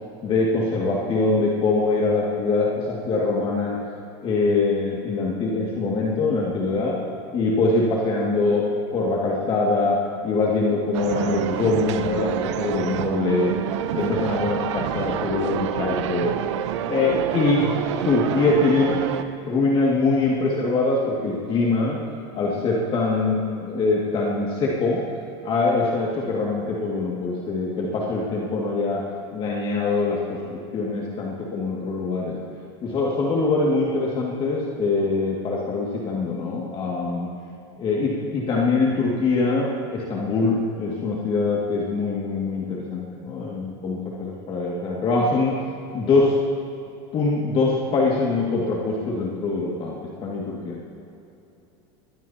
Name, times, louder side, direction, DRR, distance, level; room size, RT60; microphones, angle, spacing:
voice 1, 0.2-3.8 4.2-7.0 7.3-8.6 8.9-10.0 10.2-13.5 13.9-16.4 16.9-17.6 18.0-18.9 19.4-22.0 22.3-25.0 25.4-29.0 29.3-32.4 32.8-37.3 37.8-45.6 45.9-46.3 47.1-50.8, left 3 dB, 35° left, -4 dB, 2.2 m, -23 dB
sound 1, 10.9-19.2, right 10 dB, 85° right, 0.8 m, -27 dB
21.5 x 19.5 x 2.9 m, 2.8 s
supercardioid pair, 125°, 15 cm